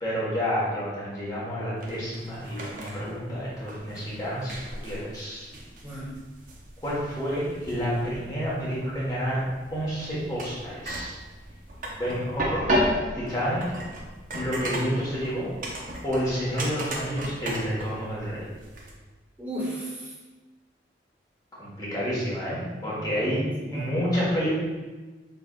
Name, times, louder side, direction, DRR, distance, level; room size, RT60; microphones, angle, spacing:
voice 1, 0.0-4.6 4.8-5.5 6.8-9.4 9.7-11.1 11.9-12.7 13.1-13.6 14.3-15.5 16.0-18.5 21.6-24.5, equal, 20° left, -8 dB, 1.5 m, -29 dB
sound 1, 1.8-18.9, equal, 45° right, 0.6 m, -35 dB
voice 2, 5.8-6.1 19.4-20.1 22.8-23.9, right 1 dB, 10° right, -7 dB, 1.2 m, -35 dB
5.9 x 3.3 x 2.5 m, 1.3 s
head